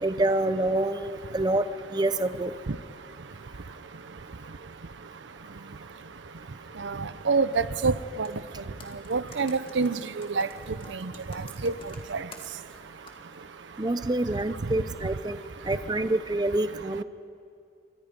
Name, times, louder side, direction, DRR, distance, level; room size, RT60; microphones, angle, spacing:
voice 1, 0.0-1.7 1.9-2.5 13.8-15.4 15.7-17.0, right 2 dB, 20° right, 11 dB, 0.7 m, -26 dB
voice 2, 6.8-8.3 9.1-10.5 11.0-11.1 11.6-11.7 12.1-12.2, right 4 dB, 85° right, 15 dB, 0.7 m, -26 dB
Computer keyboard, 8.1-8.4 8.8-12.8 13.1-13.2, left 3 dB, 30° left, 2.2 m, -48 dB
29.5 x 24.5 x 5.3 m, 2.3 s
head